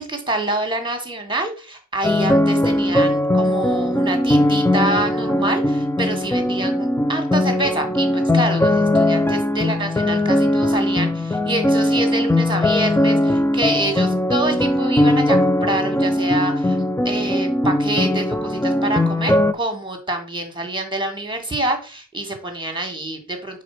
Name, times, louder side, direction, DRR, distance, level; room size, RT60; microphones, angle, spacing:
voice 1, 0.0-16.8 17.0-23.6, right 1 dB, 15° right, 4 dB, 1.8 m, -26 dB
sound 1, 2.0-19.5, left 1 dB, 10° left, 0.4 m, -19 dB
4.9 x 4.2 x 5.7 m, 0.36 s
wide cardioid pair, 85°, 30 cm